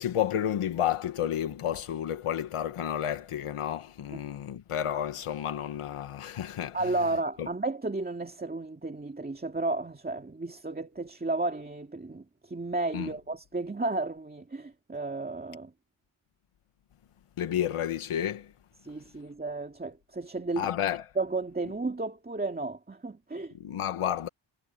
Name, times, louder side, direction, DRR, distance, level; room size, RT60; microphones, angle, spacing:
voice 1, 0.0-7.0 7.4-7.5 12.9-13.1 17.4-18.5 20.6-21.1 23.5-24.3, left 10 dB, 90° left, 1.4 m, -31 dB
voice 2, 6.7-15.7 18.8-20.7 21.2-23.5, right 2 dB, 20° right, 2.2 m, -33 dB
wide cardioid pair, 120°, 50 cm